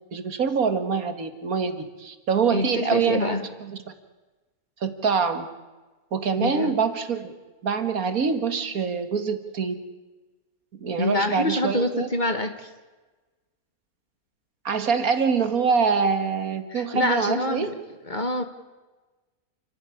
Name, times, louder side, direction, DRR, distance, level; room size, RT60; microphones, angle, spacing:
voice 1, 0.1-3.8 4.8-5.5 6.1-7.3 7.6-9.8 10.8-12.1 14.7-17.7, right 5 dB, 70° right, 9 dB, 2.0 m, -25 dB
voice 2, 2.5-3.4 6.4-6.7 11.0-12.7 16.7-17.8 18.1-18.4, left 1 dB, 30° left, 8 dB, 1.6 m, -26 dB
28.5 x 11.5 x 9.7 m, 1.2 s
omnidirectional pair, 1.6 m